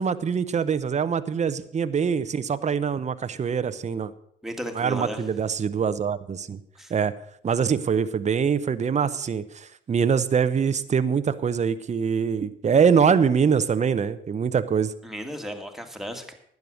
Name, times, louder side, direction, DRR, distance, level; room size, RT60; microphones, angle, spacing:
voice 1, 0.0-4.1 4.8-6.6 6.9-7.1 7.4-14.9, right 6 dB, 35° right, 13 dB, 0.8 m, -24 dB
voice 2, 4.4-5.2 6.8-6.9 15.0-16.3, equal, ahead, 4 dB, 2.0 m, -34 dB
12.5 x 9.5 x 6.4 m, 0.71 s
cardioid pair, 90°, 20 cm